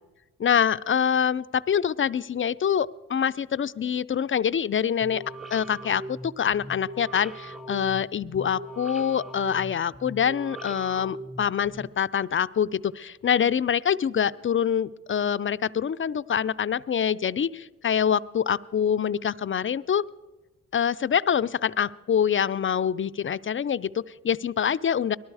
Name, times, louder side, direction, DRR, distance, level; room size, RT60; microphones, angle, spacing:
voice 1, 0.4-5.2 5.5-20.1 20.7-25.2, left 8 dB, 35° left, 15 dB, 0.4 m, -25 dB
sound 1, 5.0-11.9, right 1 dB, ahead, 0.9 m, -40 dB
19.0 x 13.0 x 4.8 m, 1.1 s
supercardioid pair, 55°, 34 cm